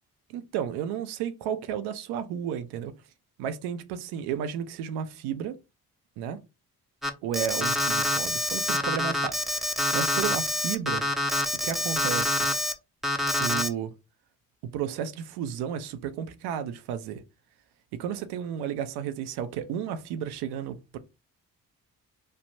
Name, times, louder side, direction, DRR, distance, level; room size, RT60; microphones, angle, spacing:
voice 1, 0.3-2.9 3.4-5.6 6.2-6.4 7.2-11.0 11.6-12.5 13.4-13.9 14.7-17.2 17.9-21.0, right 9 dB, 75° right, 0.5 m, -33 dB
Alarm, 7.0-12.7 13.0-13.7, left 1 dB, ahead, 0.6 m, -26 dB
3.3 x 2.1 x 2.6 m
hypercardioid pair, 50°, 39 cm